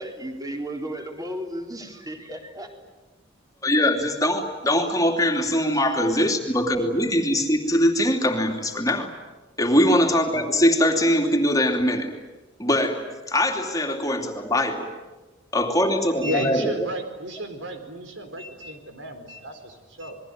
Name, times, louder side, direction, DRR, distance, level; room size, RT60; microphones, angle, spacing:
voice 1, 0.0-2.7, right 1 dB, 20° right, 3 dB, 4.0 m, -34 dB
voice 2, 3.6-9.1 9.6-12.1 12.6-14.9 15.5-16.7, left 1 dB, 20° left, 3 dB, 2.9 m, -22 dB
voice 3, 16.2-20.2, right 1 dB, 75° right, 7 dB, 4.4 m, -33 dB
28.5 x 22.0 x 9.4 m, 1.2 s
head